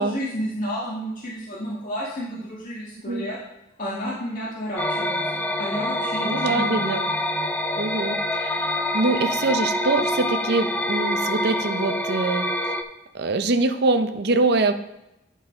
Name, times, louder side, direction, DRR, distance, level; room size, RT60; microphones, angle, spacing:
voice 1, 0.0-3.4 3.8-7.1, equal, 45° left, -7 dB, 1.7 m, -31 dB
sound 1, 4.8-12.8, left 1 dB, 10° left, 0.5 m, -26 dB
voice 2, 6.2-7.0 7.8-8.7 8.9-12.5 13.1-14.7, right 3 dB, 55° right, 8 dB, 0.7 m, -24 dB
11.0 x 3.9 x 5.2 m, 0.91 s
head